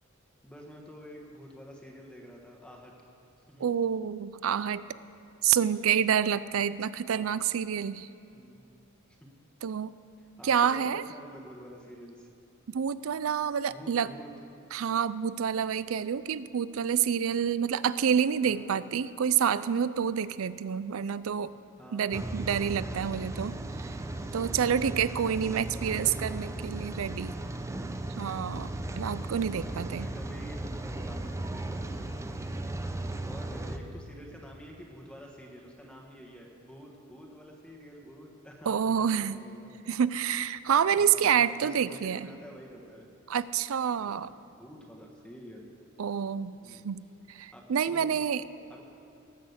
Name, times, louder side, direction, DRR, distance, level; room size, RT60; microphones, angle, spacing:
voice 1, 0.4-2.9 3.5-3.7 7.1-7.2 8.3-8.6 10.2-12.3 13.7-14.3 18.4-18.8 21.8-22.3 25.7-26.9 29.5-39.7 41.0-43.1 44.0-45.7 46.6-46.9 47.5-48.2 48.7-48.8, equal, 5° left, -1 dB, 1.3 m, -48 dB
voice 2, 3.6-4.9 5.4-8.1 9.6-9.9 10.4-11.0 12.7-14.1 14.7-21.5 21.9-23.6 24.3-27.4 28.2-28.7 29.0-30.1 38.7-39.4 39.9-42.3 43.3-44.3 46.0-46.6 46.8-47.0 47.3-48.4, right 8 dB, 75° right, 17 dB, 0.4 m, -28 dB
Rain, 22.1-33.8, right 2 dB, 15° right, 0.6 m, -36 dB
19.0 x 6.4 x 8.0 m, 2.7 s
head